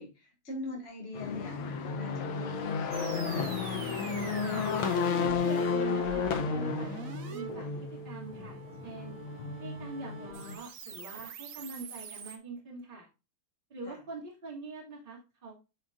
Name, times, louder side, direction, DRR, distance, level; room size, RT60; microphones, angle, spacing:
voice 1, 0.0-3.5 13.8-14.0, left 3 dB, 30° left, 0 dB, 2.2 m, -42 dB
sound 1, 1.1-10.6, left 5 dB, 90° left, 1.8 m, -33 dB
sound 2, 2.9-12.4, right 6 dB, 55° right, 1.0 m, -45 dB
voice 2, 5.2-7.7 8.0-9.2 9.6-13.1 13.7-15.6, right 3 dB, 25° right, -3 dB, 2.5 m, -44 dB
9.8 x 5.0 x 2.5 m, 0.29 s
omnidirectional pair, 2.2 m